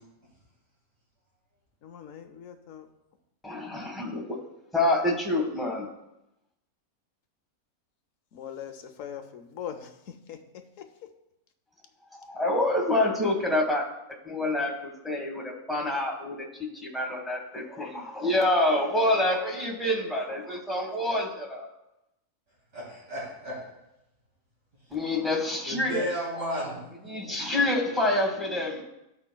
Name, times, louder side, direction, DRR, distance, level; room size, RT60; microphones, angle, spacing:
voice 1, 1.8-2.9 8.3-10.8, left 9 dB, 65° left, 7 dB, 1.0 m, -41 dB
voice 2, 3.4-4.4 4.7-5.9 12.1-13.9 14.2-16.5 16.8-21.7 24.9-26.1 27.0-28.8, left 1 dB, ahead, -1 dB, 1.1 m, -27 dB
voice 3, 22.7-23.6 25.6-26.8, equal, 75° right, -7 dB, 3.4 m, -33 dB
14.0 x 5.1 x 2.2 m, 0.89 s
omnidirectional pair, 1.6 m